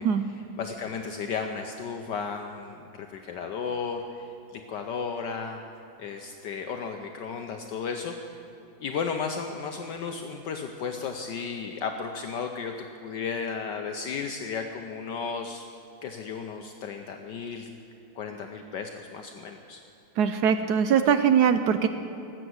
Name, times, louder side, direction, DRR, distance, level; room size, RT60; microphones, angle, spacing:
voice 1, 0.0-5.6 6.0-8.1 8.8-12.7 13.0-15.6 16.0-17.7 18.1-19.8, left 5 dB, 65° left, 4 dB, 1.3 m, -34 dB
voice 2, 20.2-21.9, right 7 dB, 75° right, 9 dB, 0.9 m, -21 dB
18.5 x 8.0 x 7.8 m, 2.9 s
omnidirectional pair, 2.2 m